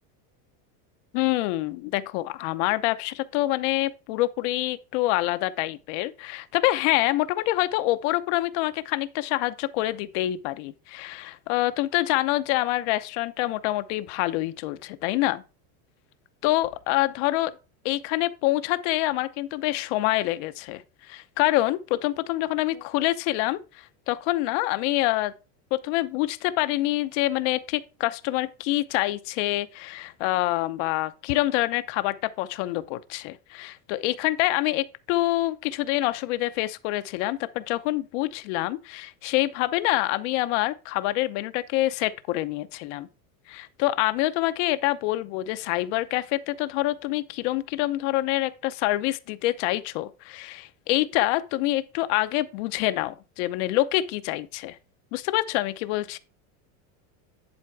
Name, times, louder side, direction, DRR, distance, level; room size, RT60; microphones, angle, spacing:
voice 1, 1.1-15.4 16.4-17.5 17.9-25.3 25.7-43.1 43.5-54.8 55.1-56.2, left 17 dB, 50° left, 0.8 m, -26 dB
10.5 x 4.3 x 4.7 m
supercardioid pair, 165°, 44 cm